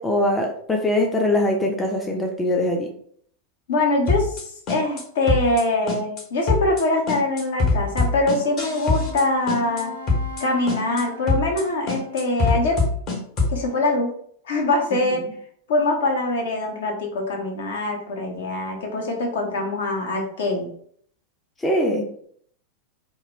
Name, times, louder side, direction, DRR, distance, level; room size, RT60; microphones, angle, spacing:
voice 1, 0.0-2.9 14.9-15.0 21.6-22.0, left 1 dB, 15° left, 2 dB, 0.4 m, -22 dB
voice 2, 3.7-9.9 10.4-12.8 13.5-14.1 14.5-15.2 15.7-20.7, left 2 dB, 60° left, 1 dB, 0.6 m, -23 dB
sound 1, 4.1-4.4 4.7-5.0 5.3-5.6 5.9-6.2 6.5-6.8 7.1-9.2 9.5-9.8 10.1-10.4 10.7-11.0 11.3-11.6 11.9-13.6, left 3 dB, 35° left, 0.8 m, -23 dB
Wind instrument woodwind instrument, 8.0-12.9, left 4 dB, 85° right, 0.5 m, -40 dB
2.1 x 2.0 x 3.3 m, 0.62 s
figure-of-eight pair, 90°, 0 cm